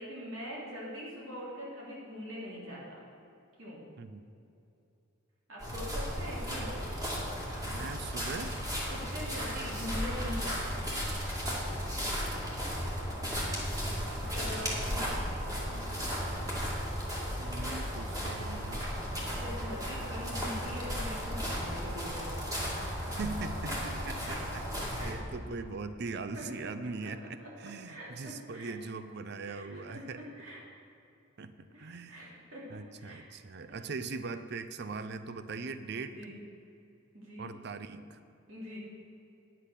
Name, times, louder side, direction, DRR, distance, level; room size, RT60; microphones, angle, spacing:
voice 1, 0.0-3.0 3.6-3.8 5.5-6.8 8.9-10.8 14.1-15.1 19.4-22.3 23.8-24.1 24.9-25.1 26.3-26.7 27.0-27.1 27.8-28.7 29.4-30.6 31.7-33.3 33.7-33.8 36.1-36.4 37.1-37.5 38.5-38.8, equal, 80° right, -5 dB, 3.0 m, -43 dB
voice 2, 4.0-4.3 7.6-8.5 15.7-16.2 17.4-18.9 23.2-24.7 25.0-30.2 31.4-32.3 32.7-36.1 37.4-38.2, right 4 dB, 55° right, 11 dB, 0.5 m, -41 dB
sound 1, 5.6-25.1, equal, 20° right, 2.2 m, -35 dB
9.9 x 7.6 x 6.7 m, 2.7 s
head